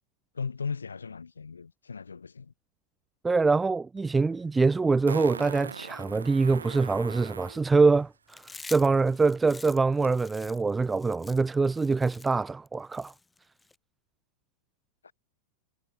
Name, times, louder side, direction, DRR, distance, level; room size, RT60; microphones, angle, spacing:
voice 1, 0.3-2.5 15.0-15.1, left 5 dB, 75° left, 2.6 m, -37 dB
voice 2, 3.2-8.4 8.7-13.1, right 4 dB, 10° right, 0.3 m, -24 dB
Fart, 4.0-4.1 5.1-7.6 10.0-10.1, right 6 dB, 75° right, 0.9 m, -40 dB
Chewing mastication, 8.3-13.8, left 3 dB, 10° left, 1.4 m, -47 dB
figure-of-eight pair, 90°, 0 cm